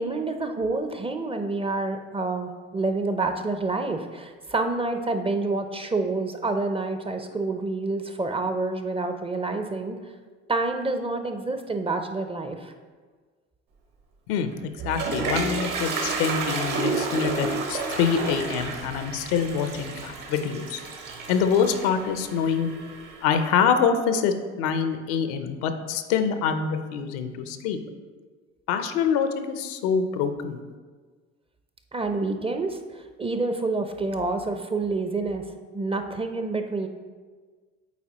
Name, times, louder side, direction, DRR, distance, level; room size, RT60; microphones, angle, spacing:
voice 1, 0.0-10.0 10.5-12.7 31.9-36.9, right 3 dB, 15° right, 6 dB, 0.5 m, -28 dB
Toilet flush, 14.5-23.4, right 3 dB, 60° right, 1.3 m, -31 dB
voice 2, 14.8-20.8 21.3-22.7 23.2-27.8 28.7-30.6, left 6 dB, 75° left, 8 dB, 0.7 m, -25 dB
8.2 x 4.1 x 2.9 m, 1.4 s
hypercardioid pair, 70°, 36 cm